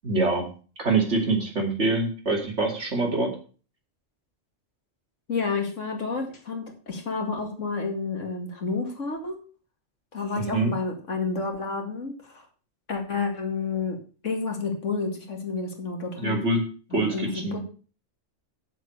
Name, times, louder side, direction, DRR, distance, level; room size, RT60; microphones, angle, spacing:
voice 1, 0.0-0.5 0.8-3.3 10.4-10.8 16.2-16.6 16.9-17.6, right 3 dB, 65° right, 1 dB, 3.0 m, -25 dB
voice 2, 5.3-9.4 10.1-12.4 12.9-14.0 14.2-16.4 16.9-17.6, left 4 dB, 85° left, 3 dB, 2.6 m, -30 dB
7.9 x 7.2 x 6.5 m, 0.38 s
omnidirectional pair, 1.3 m